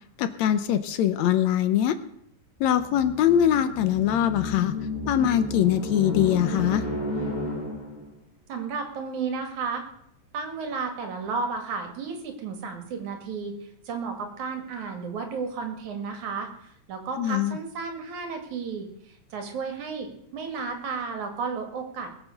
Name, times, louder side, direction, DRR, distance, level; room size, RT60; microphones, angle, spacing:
voice 1, 0.2-2.0 2.6-4.8 5.1-6.8 17.2-17.6, left 10 dB, 75° left, 11 dB, 2.0 m, -22 dB
sound 1, 2.6-8.1, left 1 dB, 15° left, 1.9 m, -32 dB
voice 2, 8.5-9.8 10.3-13.6 13.9-16.5 16.9-22.1, right 5 dB, 80° right, 5 dB, 3.5 m, -33 dB
21.5 x 7.4 x 6.7 m, 0.74 s
omnidirectional pair, 3.4 m